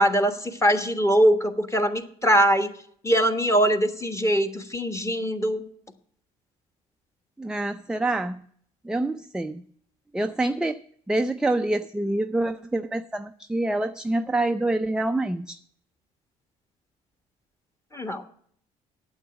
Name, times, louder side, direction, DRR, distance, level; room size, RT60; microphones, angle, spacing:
voice 1, 0.0-2.7 3.0-5.7 17.9-18.2, equal, 15° left, 6 dB, 1.5 m, -22 dB
voice 2, 7.4-8.4 8.8-9.6 10.1-10.8 11.1-15.6, right 2 dB, 5° right, 8 dB, 0.5 m, -26 dB
9.0 x 7.9 x 8.8 m, 0.63 s
supercardioid pair, 75°, 18 cm